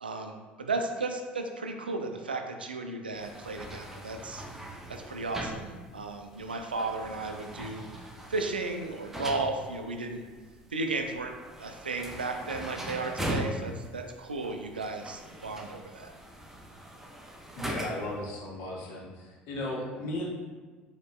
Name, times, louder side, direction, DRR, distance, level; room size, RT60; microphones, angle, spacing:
voice 1, 0.0-4.5 4.9-10.2 10.7-16.1, right 3 dB, 85° right, 4 dB, 0.4 m, -34 dB
sound 1, 3.1-18.2, right 1 dB, 5° right, 0.7 m, -41 dB
voice 2, 17.6-20.3, left 1 dB, 55° left, -2 dB, 1.0 m, -36 dB
6.4 x 2.9 x 2.2 m, 1.4 s
figure-of-eight pair, 60°, 5 cm